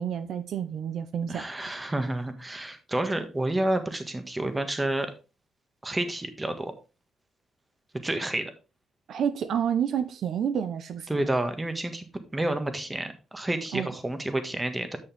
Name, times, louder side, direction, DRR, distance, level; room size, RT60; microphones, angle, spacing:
voice 1, 0.0-1.4 9.1-11.2 13.7-13.9, right 8 dB, 65° right, 0.8 m, -29 dB
voice 2, 1.3-5.1 5.8-6.7 8.0-8.5 11.1-12.0 12.3-15.0, right 1 dB, 15° right, 1.5 m, -29 dB
8.7 x 6.5 x 3.5 m
cardioid pair, 90°, 0 cm